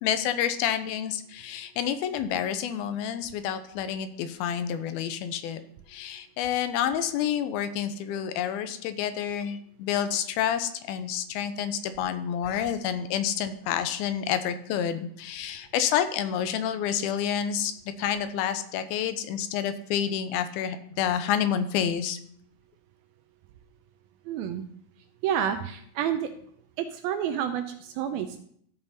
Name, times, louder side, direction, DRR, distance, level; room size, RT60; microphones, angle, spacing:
voice 1, 0.0-5.6 5.9-17.7 18.0-22.2, left 9 dB, 80° left, 10 dB, 2.4 m, -29 dB
voice 2, 24.3-24.6 25.2-26.3 26.8-28.4, right 9 dB, 80° right, 7 dB, 2.3 m, -29 dB
14.0 x 5.5 x 4.2 m, 0.64 s
omnidirectional pair, 4.6 m